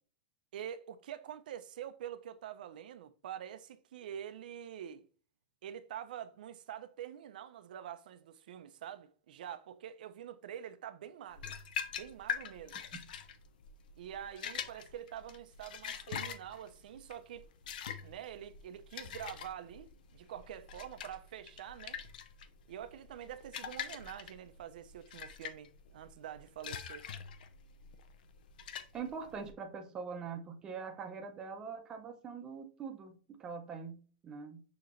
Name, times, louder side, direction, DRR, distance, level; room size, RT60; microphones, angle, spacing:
voice 1, 0.5-5.0 5.6-11.6 12.0-12.8 14.0-17.5 18.0-22.0 22.7-27.1, right 10 dB, 75° right, 0.4 m, -46 dB
sound 1, 11.3-29.5, left 8 dB, 75° left, 0.5 m, -44 dB
voice 2, 28.9-34.6, right 5 dB, 15° right, 0.5 m, -43 dB
6.5 x 2.8 x 2.5 m
supercardioid pair, 170°, 5 cm